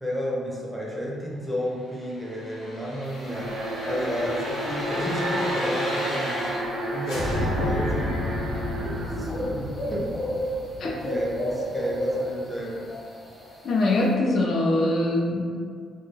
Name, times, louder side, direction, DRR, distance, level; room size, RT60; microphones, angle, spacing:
voice 1, 0.0-3.5 3.8-6.6 6.9-8.1 8.8-10.1 10.8-12.9, equal, 5° right, -4 dB, 0.5 m, -32 dB
sound 1, 2.0-6.8 7.0-11.9 12.3-12.4, left 1 dB, 90° left, 1.0 m, -32 dB
sound 2, 3.1-14.1, equal, 30° left, 0.9 m, -34 dB
Alarm, 3.3-10.4, equal, 80° right, 0.5 m, -31 dB
voice 2, 13.6-15.6, left 2 dB, 60° left, -2 dB, 0.5 m, -23 dB
2.2 x 2.1 x 3.1 m, 2.1 s
cardioid pair, 90°, 0 cm